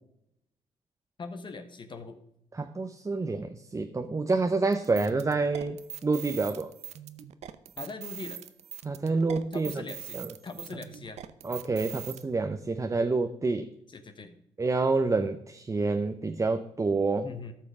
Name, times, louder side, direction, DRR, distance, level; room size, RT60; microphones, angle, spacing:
voice 1, 1.2-2.2 7.8-8.4 9.5-10.2 10.4-11.2 13.9-14.3 17.2-17.5, left 4 dB, 45° left, 8 dB, 1.1 m, -41 dB
voice 2, 2.5-6.7 8.8-9.8 10.1-10.3 11.4-13.7 14.6-17.3, right 3 dB, 25° right, 7 dB, 0.8 m, -28 dB
sound 1, 4.7-12.2, right 10 dB, 75° right, 0.7 m, -42 dB
13.5 x 5.7 x 4.9 m, 0.77 s
cardioid pair, 70°, 11 cm